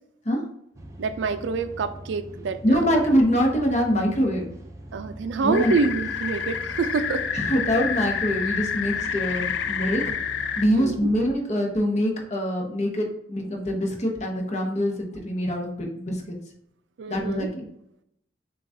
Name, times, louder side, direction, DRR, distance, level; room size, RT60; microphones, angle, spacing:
sound 1, 0.7-11.3, right 1 dB, 15° right, 0.5 m, -42 dB
voice 1, 1.0-2.8 4.9-7.2 10.7-11.1 17.0-17.5, right 4 dB, 75° right, 10 dB, 0.4 m, -27 dB
voice 2, 2.6-4.5 5.4-5.7 7.3-10.1 10.4-16.2 17.1-17.7, equal, 40° left, 1 dB, 0.9 m, -24 dB
sound 2, 5.5-10.6, left 7 dB, 70° left, 0.4 m, -29 dB
6.7 x 2.4 x 2.6 m, 0.75 s
head